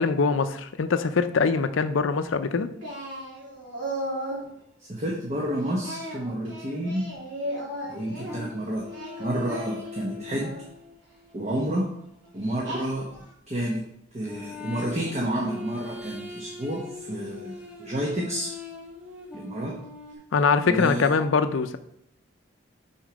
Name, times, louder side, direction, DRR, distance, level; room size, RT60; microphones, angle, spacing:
voice 1, 0.0-2.7 20.3-21.8, left 4 dB, 90° left, 10 dB, 0.5 m, -23 dB
Singing, 2.8-4.5 5.8-8.4 8.9-10.6 11.4-11.7 12.6-13.3, right 1 dB, 75° right, 3.1 m, -35 dB
voice 2, 4.9-7.1 7.9-8.8 9.2-10.5 11.3-11.9 12.3-13.0 13.5-13.8 14.1-18.6 19.3-19.7 20.6-21.1, right 1 dB, 35° right, -2 dB, 1.0 m, -30 dB
sound 1, 8.3-13.3 14.2-20.1, left 4 dB, 5° right, 1.1 m, -42 dB
6.5 x 4.4 x 5.0 m, 0.72 s
head